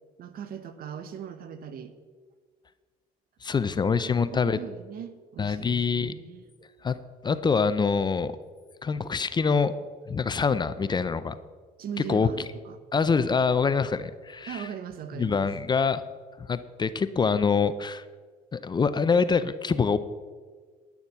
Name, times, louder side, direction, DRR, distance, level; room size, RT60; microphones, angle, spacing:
voice 1, 0.2-2.0 4.0-6.5 11.8-12.8 14.5-15.5, right 8 dB, 60° right, 11 dB, 1.1 m, -39 dB
voice 2, 3.4-4.6 5.4-6.1 6.8-7.0 7.2-8.3 8.8-9.7 10.1-11.4 12.1-12.3 12.9-14.7 15.1-16.0 16.4-18.0 18.5-20.0, left 5 dB, 25° left, 13 dB, 0.5 m, -25 dB
10.5 x 7.1 x 8.0 m, 1.6 s
cardioid pair, 110°, 17 cm